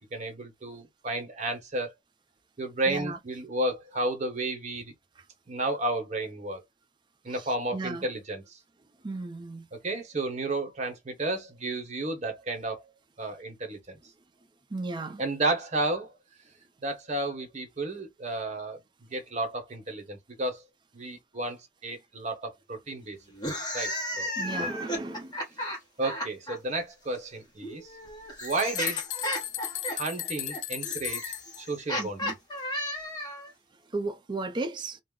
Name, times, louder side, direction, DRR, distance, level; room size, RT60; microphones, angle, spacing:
voice 1, 0.1-1.9 2.6-4.9 5.5-6.6 7.2-8.6 9.7-12.9 13.2-14.0 15.2-16.1 16.8-18.8 19.1-20.6 20.9-23.2 23.7-23.9 24.2-24.3 24.6-24.7 26.0-27.9 28.4-29.0 29.9-31.2 31.6-32.3, right 2 dB, 40° right, 0.9 m, -32 dB
voice 2, 2.9-3.2 7.3-7.4 7.7-8.1 9.0-9.7 14.7-15.2 24.4-25.3 32.0-32.4 33.9-35.0, right 2 dB, 25° right, 0.4 m, -34 dB
sound 1, 23.3-26.6 27.6-33.5, equal, 25° left, 1.0 m, -34 dB
sound 2, 28.1-28.2 28.4-31.6, left 13 dB, 80° left, 0.4 m, -35 dB
2.3 x 2.0 x 3.6 m
head